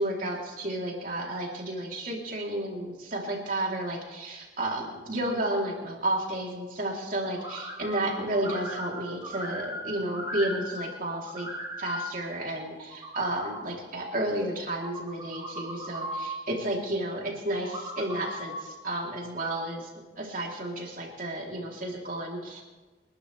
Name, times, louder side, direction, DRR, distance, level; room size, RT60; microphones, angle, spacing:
voice 1, 0.0-11.5 11.8-19.9 20.2-22.6, right 1 dB, 45° right, -1 dB, 3.6 m, -32 dB
sound 1, 7.4-8.1 8.3-11.0 11.2-12.1 12.6-13.6 14.6-16.4 17.5-18.7, equal, 20° right, 6.8 m, -37 dB
29.5 x 12.0 x 3.5 m, 1.3 s
head